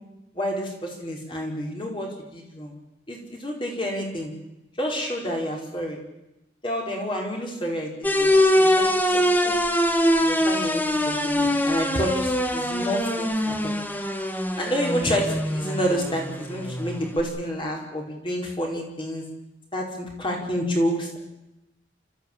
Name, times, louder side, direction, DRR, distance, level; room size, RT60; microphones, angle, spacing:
voice 1, 0.3-2.7 3.1-4.3 4.8-6.0 6.6-8.3 8.5-9.6 10.2-13.8 14.6-19.2 19.7-21.2, equal, 30° left, 0 dB, 5.1 m, -29 dB
sound 1, 8.0-17.2, left 1 dB, 10° left, 1.6 m, -23 dB
29.0 x 14.5 x 8.9 m, 0.92 s
head